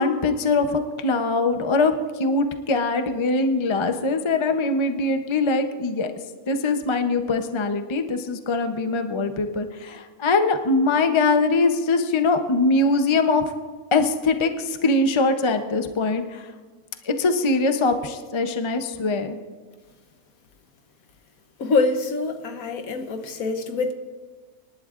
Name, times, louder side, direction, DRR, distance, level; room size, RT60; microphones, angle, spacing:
voice 1, 0.0-1.9 2.2-6.1 6.5-13.4 13.9-16.5 17.0-19.4, left 3 dB, 30° left, 7 dB, 0.5 m, -22 dB
voice 2, 21.6-23.9, left 3 dB, 70° left, 7 dB, 1.4 m, -24 dB
26.0 x 11.5 x 2.5 m, 1.4 s
omnidirectional pair, 1.6 m